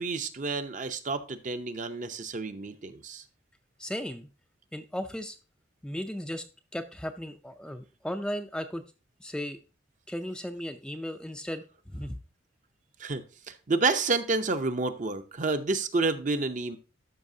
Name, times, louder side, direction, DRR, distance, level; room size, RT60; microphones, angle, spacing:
voice 1, 0.0-3.2 13.0-16.8, right 3 dB, 40° right, 0.7 m, -29 dB
voice 2, 3.8-4.3 4.7-5.4 5.8-6.4 6.7-8.8 9.2-9.6 10.1-11.7 11.9-12.2, equal, 5° left, 0.4 m, -35 dB
12.5 x 5.6 x 2.7 m
head